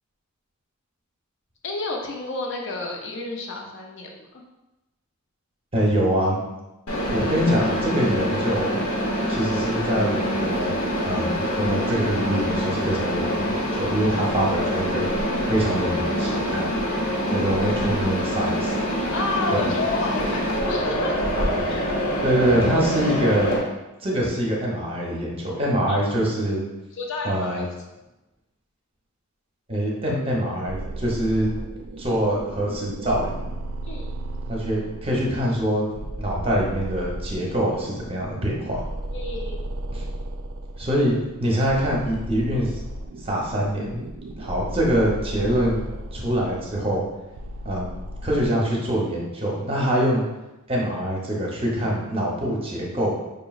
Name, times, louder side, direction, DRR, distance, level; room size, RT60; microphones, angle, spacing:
voice 1, 1.6-4.4 17.5-17.7 19.1-21.2 21.7-21.8 25.9-26.0 26.9-27.6 33.8-34.1 39.1-39.6, left 2 dB, 55° left, 1 dB, 0.5 m, -30 dB
voice 2, 5.7-6.4 7.1-8.8 9.3-10.7 11.0-15.0 15.5-16.7 17.3-18.7 19.5-19.7 22.2-23.5 24.0-26.6 27.2-27.6 29.7-31.5 32.0-33.5 34.5-38.8 39.9-40.0 40.8-42.8 43.2-44.0 44.4-45.8 46.1-47.0 47.6-47.9 48.2-50.2 50.7-53.1, equal, 25° right, -3 dB, 0.7 m, -24 dB
Mechanisms, 6.9-23.6, equal, 75° left, 0.9 m, -25 dB
sound 1, 30.7-48.5, right 1 dB, 85° right, 0.4 m, -35 dB
5.2 x 3.0 x 2.3 m, 1.0 s
head